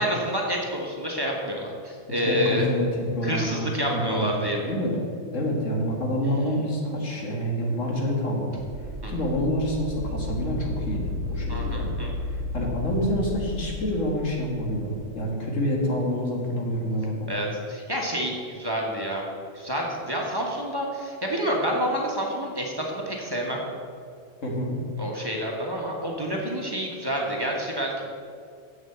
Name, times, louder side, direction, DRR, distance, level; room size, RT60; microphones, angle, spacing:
voice 1, 0.0-2.6 3.2-4.7 9.0-9.1 11.5-12.1 17.3-19.2 19.5-23.6 25.0-28.1, equal, 20° right, -2 dB, 1.4 m, -28 dB
voice 2, 2.2-4.2 4.7-4.9 5.3-8.6 9.1-11.9 12.3-17.3 24.4-24.8, equal, 85° left, -1 dB, 2.1 m, -27 dB
sound 1, 8.6-15.2, left 2 dB, 70° right, 1.0 m, -33 dB
7.3 x 6.3 x 7.9 m, 2.2 s
omnidirectional pair, 1.3 m